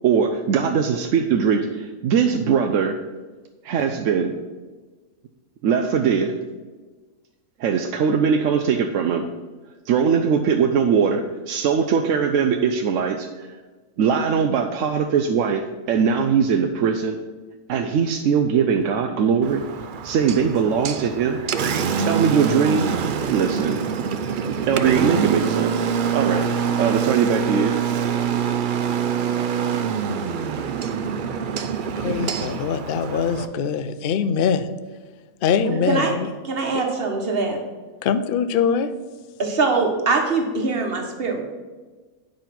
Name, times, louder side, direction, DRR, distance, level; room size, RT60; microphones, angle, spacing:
voice 1, 0.0-3.0 3.6-4.3 5.6-6.4 7.6-9.3 9.9-13.6 14.0-17.2 17.7-19.6 20.0-21.4 22.0-23.0 23.3-23.8 24.7-25.9 26.1-27.8, right 6 dB, 65° right, 5 dB, 0.9 m, -21 dB
Engine, 19.4-33.5, right 7 dB, 85° right, 0.4 m, -25 dB
voice 2, 32.0-34.7 35.4-36.3 36.7-36.8 38.0-38.9, left 7 dB, 65° left, 10 dB, 0.5 m, -23 dB
voice 3, 35.6-36.1 36.4-37.6 39.4-41.4, right 4 dB, 40° right, 2 dB, 1.4 m, -22 dB
9.5 x 5.2 x 5.9 m, 1.3 s
omnidirectional pair, 1.5 m